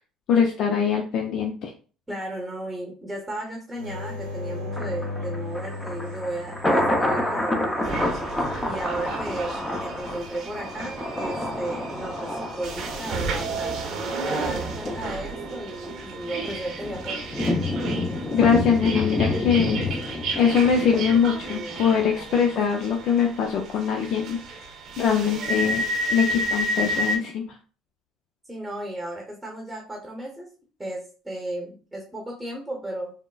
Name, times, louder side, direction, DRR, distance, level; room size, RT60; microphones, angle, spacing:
voice 1, 0.3-1.7 18.3-27.6, left 7 dB, 60° left, 2 dB, 0.4 m, -23 dB
voice 2, 2.1-8.1 8.6-12.3 12.6-13.8 14.3-17.2 28.5-30.5 30.8-33.1, right 1 dB, 15° right, 0 dB, 0.8 m, -34 dB
sound 1, 3.7-8.4 11.6-12.2, left 2 dB, 90° right, 0.8 m, -36 dB
Thunder, 4.7-21.8 22.2-22.3, left 1 dB, 15° left, 0.6 m, -29 dB
sound 2, 7.8-27.2, right 2 dB, 55° right, 0.8 m, -32 dB
3.5 x 2.0 x 2.3 m, 0.37 s
hypercardioid pair, 75°, 0 cm